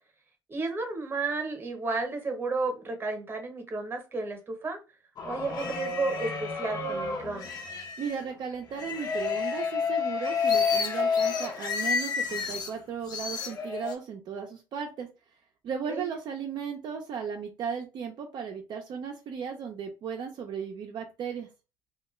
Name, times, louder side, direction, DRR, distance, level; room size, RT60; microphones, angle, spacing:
voice 1, 0.5-4.8 5.2-7.5 15.9-16.1, right 3 dB, 25° right, 5 dB, 0.9 m, -32 dB
sound 1, 5.2-8.2 8.8-12.7 13.1-13.9, left 5 dB, 50° left, 0.7 m, -30 dB
voice 2, 8.0-15.1 15.6-21.5, right 6 dB, 55° right, 2 dB, 0.5 m, -36 dB
2.2 x 2.2 x 3.0 m, 0.30 s
cardioid pair, 90°, 9 cm